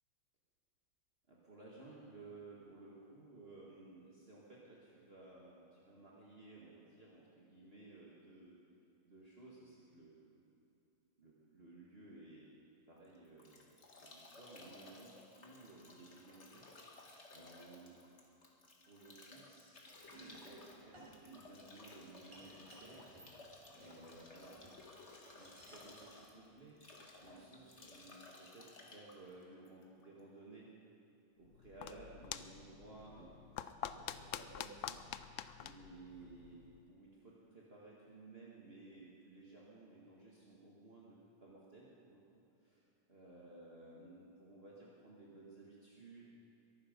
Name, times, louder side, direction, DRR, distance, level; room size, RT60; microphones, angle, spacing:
voice 1, 1.3-8.6 9.0-10.4 11.2-12.5 12.9-13.7 14.0-16.6 17.3-18.0 18.8-19.8 20.1-23.4 23.7-24.6 25.4-30.7 31.4-33.3 33.9-35.0 35.6-36.6 36.9-46.2, right 2 dB, 40° right, -5 dB, 2.1 m, -57 dB
Bathtub (filling or washing) / Drip / Trickle dribble, 13.0-30.2, left 2 dB, 45° left, 2.0 m, -58 dB
Domestic sounds home sounds, 19.9-28.1, right 2 dB, 15° right, 3.7 m, -60 dB
sound 1, 31.4-36.8, left 10 dB, 65° left, 0.8 m, -47 dB
22.5 x 12.0 x 5.3 m, 2.8 s
omnidirectional pair, 1.7 m